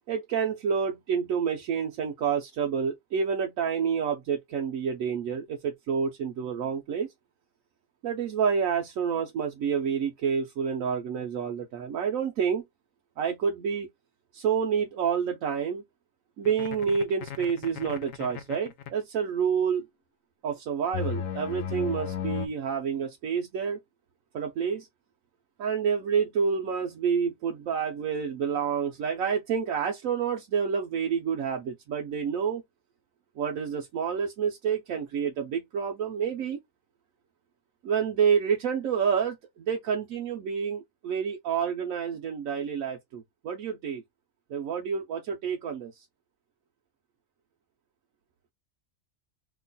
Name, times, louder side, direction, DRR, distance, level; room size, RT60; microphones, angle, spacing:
voice 1, 0.1-7.1 8.0-12.6 13.2-13.9 14.3-15.8 16.4-19.9 20.4-23.8 24.3-24.9 25.6-32.6 33.4-36.6 37.8-44.0 44.5-46.0, right 7 dB, 85° right, 1.1 m, -28 dB
sound 1, 16.5-18.9 20.9-22.5, left 8 dB, 75° left, 1.0 m, -34 dB
3.0 x 2.2 x 3.9 m
omnidirectional pair, 1.4 m